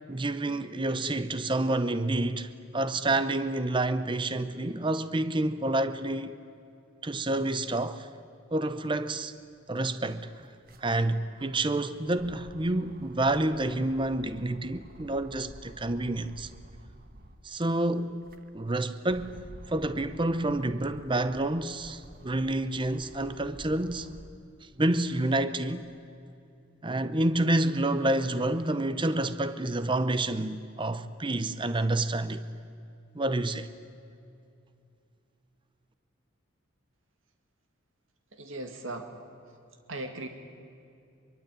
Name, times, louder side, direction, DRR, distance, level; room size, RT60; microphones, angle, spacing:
voice 1, 0.1-6.3 7.0-8.1 8.5-9.3 9.7-10.3 10.8-16.5 17.4-18.3 18.5-24.1 24.8-25.9 26.8-32.4 33.1-33.7, right 2 dB, 25° right, 0.8 m, -28 dB
sound 1, 9.4-9.5 9.7-17.5 18.0-24.5 25.0-26.2, right 1 dB, 45° right, 1.3 m, -51 dB
voice 2, 38.3-39.6 39.9-40.3, right 2 dB, 70° right, 2.1 m, -39 dB
24.5 x 23.0 x 9.0 m
head